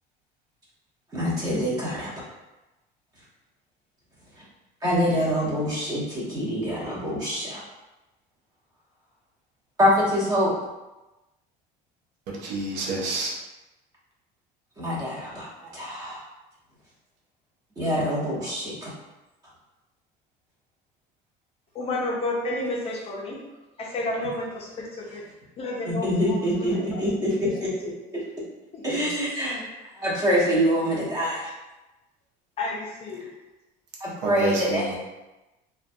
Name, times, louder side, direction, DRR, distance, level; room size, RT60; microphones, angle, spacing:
voice 1, 1.1-2.1 4.3-4.4 4.8-7.6 9.8-10.5 14.8-15.5 15.7-16.2 17.8-18.9 25.9-27.9 28.8-29.6 29.9-31.5 33.2-33.3 34.0-34.9, equal, 20° right, -7 dB, 0.9 m, -25 dB
voice 2, 12.3-13.3 15.6-15.7 34.2-34.9, right 3 dB, 75° right, -2 dB, 0.6 m, -29 dB
voice 3, 21.7-23.4 23.8-25.2 25.6-27.0 28.7-29.0 32.6-33.3, left 2 dB, 35° left, -3 dB, 0.5 m, -31 dB
2.2 x 2.2 x 2.6 m, 1.0 s
cardioid pair, 150°, 17 cm